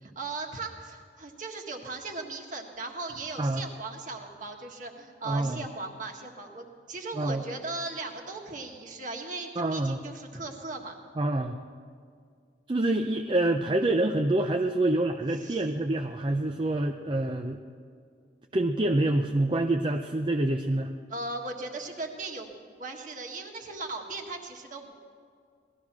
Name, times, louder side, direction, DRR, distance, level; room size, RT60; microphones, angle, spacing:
voice 1, 0.0-10.9 15.4-15.7 21.1-22.5 22.8-24.9, right 3 dB, 45° right, 2 dB, 1.6 m, -38 dB
voice 2, 5.3-5.6 7.1-7.4 9.6-10.0 11.2-11.6 12.7-17.6 18.5-20.9, right 2 dB, 30° right, 4 dB, 0.5 m, -26 dB
18.0 x 13.0 x 6.0 m, 2.2 s
head